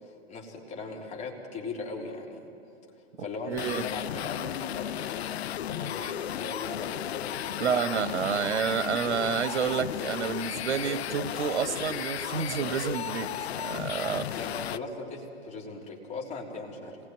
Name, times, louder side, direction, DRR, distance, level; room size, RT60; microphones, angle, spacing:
voice 1, 0.0-2.4 3.2-8.0 14.4-17.0, left 3 dB, 20° left, -1 dB, 3.5 m, -39 dB
sound 1, 3.5-14.8, left 11 dB, 65° left, 0.8 m, -34 dB
voice 2, 3.5-3.8 7.6-14.4, right 7 dB, 75° right, 10 dB, 1.3 m, -29 dB
26.0 x 20.0 x 9.3 m, 2.7 s
hypercardioid pair, 135°, 34 cm